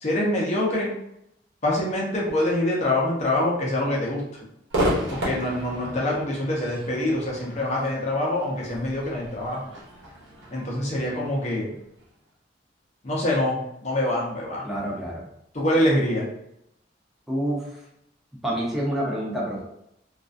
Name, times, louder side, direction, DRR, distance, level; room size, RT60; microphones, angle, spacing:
voice 1, 0.0-0.9 1.6-4.2 5.1-9.6 10.5-11.7 13.0-14.6 15.5-16.3, left 1 dB, 40° left, -3 dB, 0.7 m, -25 dB
Crowd / Fireworks, 4.7-12.0, equal, 80° right, 0.9 m, -33 dB
voice 2, 14.6-15.2 17.3-17.8 18.4-19.6, right 1 dB, ahead, -5 dB, 0.6 m, -27 dB
2.4 x 2.2 x 2.5 m, 0.78 s
head